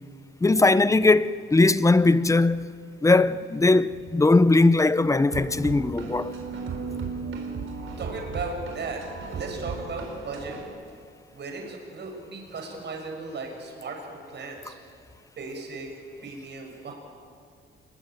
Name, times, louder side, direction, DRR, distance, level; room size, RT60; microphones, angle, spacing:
voice 1, 0.4-6.4, left 2 dB, 15° left, 0.7 m, -20 dB
sound 1, 5.3-10.6, right 4 dB, 70° right, 4.7 m, -35 dB
voice 2, 8.0-10.6 11.3-14.7 15.4-15.9 16.2-16.9, right 3 dB, 55° right, 6.2 m, -36 dB
28.0 x 22.5 x 9.2 m
wide cardioid pair, 135°, 21 cm